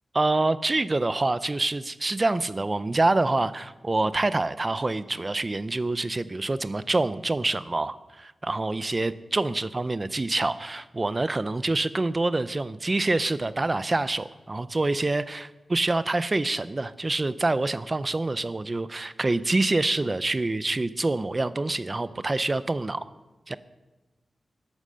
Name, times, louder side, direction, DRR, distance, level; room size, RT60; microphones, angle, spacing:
voice 1, 0.1-23.1 23.5-23.6, right 2 dB, 25° right, 15 dB, 0.5 m, -26 dB
13.0 x 11.5 x 6.7 m, 1.1 s
wide cardioid pair, 165°, 0 cm